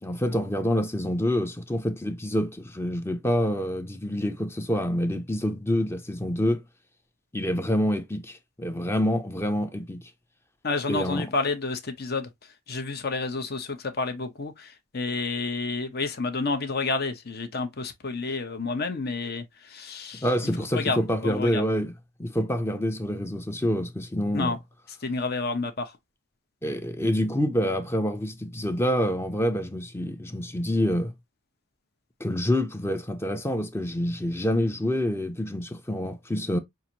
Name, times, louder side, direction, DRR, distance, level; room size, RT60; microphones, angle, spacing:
voice 1, 0.0-6.6 7.3-10.1 10.9-11.3 20.2-24.5 26.6-31.1 32.2-36.6, equal, 10° left, 0.5 m, -27 dB
voice 2, 10.6-20.3 20.7-21.6 24.3-24.6 25.0-26.0, left 3 dB, 45° left, 0.8 m, -30 dB
5.7 x 2.5 x 2.8 m
head